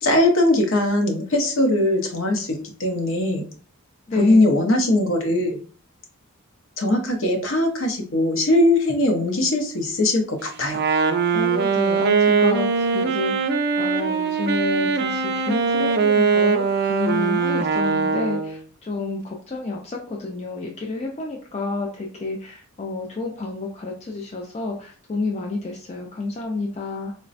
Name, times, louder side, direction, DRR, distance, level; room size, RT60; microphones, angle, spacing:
voice 1, 0.0-3.5 4.2-5.5 6.8-10.8, left 1 dB, 65° left, 3 dB, 0.7 m, -20 dB
voice 2, 4.1-4.5 11.3-16.6 16.9-27.1, left 3 dB, 30° left, 0 dB, 0.3 m, -29 dB
Wind instrument woodwind instrument, 10.6-18.6, right 5 dB, 45° right, 0.3 m, -21 dB
3.9 x 2.1 x 2.5 m, 0.41 s
head